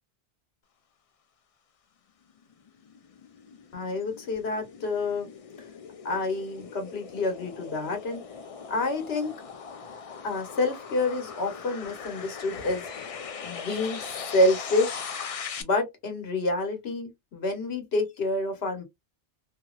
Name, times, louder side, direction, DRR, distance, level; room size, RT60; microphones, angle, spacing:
sound 1, 2.4-15.6, left 6 dB, 50° left, 0.4 m, -40 dB
voice 1, 3.7-5.3 6.0-8.2 8.7-9.3 10.2-13.0 13.4-15.1 15.6-18.8, left 2 dB, 70° left, 1.3 m, -28 dB
2.8 x 2.8 x 2.3 m
omnidirectional pair, 1.1 m